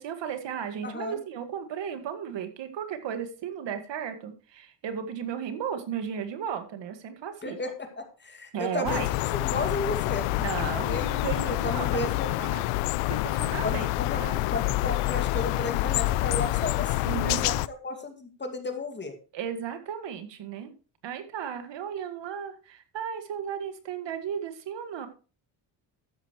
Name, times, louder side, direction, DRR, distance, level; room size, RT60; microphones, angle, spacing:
voice 1, 0.0-7.6 8.5-9.1 10.4-12.1 12.4-12.6 13.1-14.4 17.0-17.4 19.3-20.7 21.0-25.1, right 8 dB, 60° right, 8 dB, 2.0 m, -35 dB
voice 2, 0.8-1.2 7.4-9.0 9.3-10.3 10.8-12.3 13.6-14.2 14.5-19.2, left 2 dB, 20° left, 6 dB, 2.3 m, -34 dB
sound 1, 8.9-17.7, left 18 dB, 85° left, 0.6 m, -27 dB
12.5 x 9.5 x 3.2 m, 0.34 s
cardioid pair, 105°, 49 cm